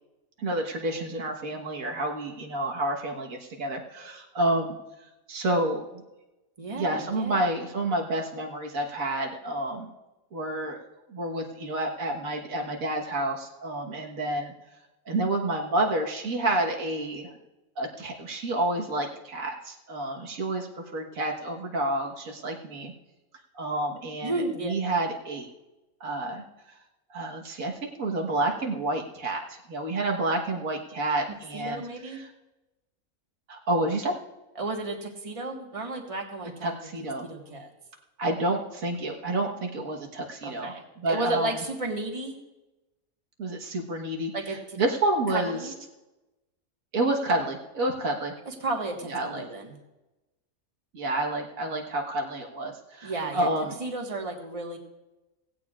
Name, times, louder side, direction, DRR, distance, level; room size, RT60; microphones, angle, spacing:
voice 1, 0.4-4.8 5.3-5.8 6.8-9.9 10.3-14.5 15.1-17.3 17.8-22.9 23.5-24.3 24.6-25.5 26.0-26.4 27.1-32.3 33.5-34.1 36.6-37.3 38.2-41.5 43.4-45.6 46.9-48.3 49.1-49.4 50.9-53.8, right 2 dB, 80° right, 1 dB, 1.8 m, -29 dB
voice 2, 6.6-7.5 24.2-24.7 31.5-32.2 34.5-36.7 37.2-37.7 40.4-40.8 41.1-42.4 44.3-44.8 45.3-45.7 48.4-49.8 53.0-53.5 53.8-54.8, right 2 dB, 25° right, 1 dB, 1.5 m, -33 dB
17.0 x 16.0 x 2.4 m, 1.0 s
omnidirectional pair, 1.4 m